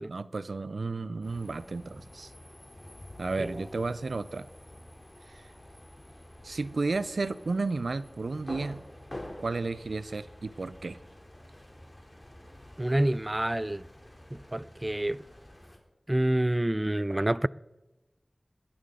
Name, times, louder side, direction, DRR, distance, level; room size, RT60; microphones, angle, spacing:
voice 1, 0.0-2.3 3.2-4.5 5.3-5.5 6.4-8.8 9.4-11.0, right 3 dB, 85° right, 0.5 m, -33 dB
sound 1, 1.2-15.8, left 1 dB, 30° left, 3.0 m, -48 dB
voice 2, 12.8-13.8 14.3-15.2 16.1-17.5, right 1 dB, 25° right, 0.3 m, -27 dB
20.5 x 11.0 x 3.8 m
wide cardioid pair, 40°, 0 cm